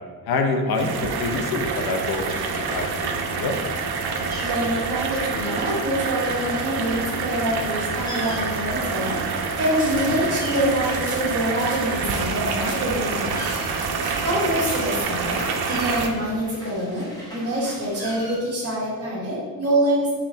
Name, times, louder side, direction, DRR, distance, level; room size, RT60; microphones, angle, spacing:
voice 1, 0.3-3.6 10.1-10.2, left 3 dB, 70° left, 4 dB, 0.6 m, -26 dB
sound 1, 0.7-16.1, right 5 dB, 75° right, 0.5 m, -27 dB
sound 2, 1.1-18.3, equal, 10° left, 1.0 m, -40 dB
voice 2, 4.4-9.2 9.6-13.4 13.9-15.4 15.7-17.1 17.3-20.1, right 1 dB, 40° right, -5 dB, 1.1 m, -25 dB
sound 3, 9.8-15.0, right 2 dB, 20° right, 0.8 m, -40 dB
5.5 x 3.1 x 2.6 m, 1.6 s
wide cardioid pair, 180°, 39 cm